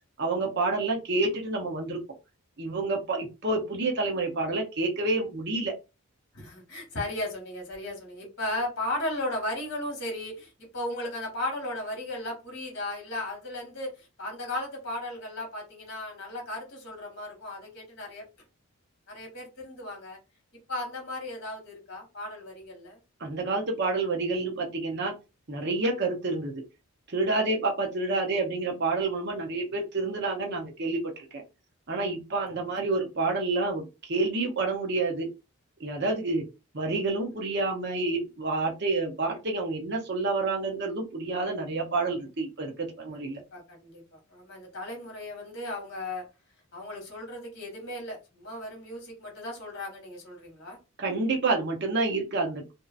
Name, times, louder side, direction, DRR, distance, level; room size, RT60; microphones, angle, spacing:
voice 1, 0.2-2.0 2.6-5.7 23.2-25.1 25.5-26.6 27.1-31.0 31.3-31.4 31.9-35.3 35.8-36.5 36.7-43.4 51.0-52.7, right 3 dB, 50° right, 0.7 m, -28 dB
voice 2, 6.3-18.2 19.1-20.2 20.7-23.0 43.2-46.2 46.7-50.8, left 1 dB, 50° left, 1.2 m, -36 dB
2.7 x 2.4 x 2.4 m
head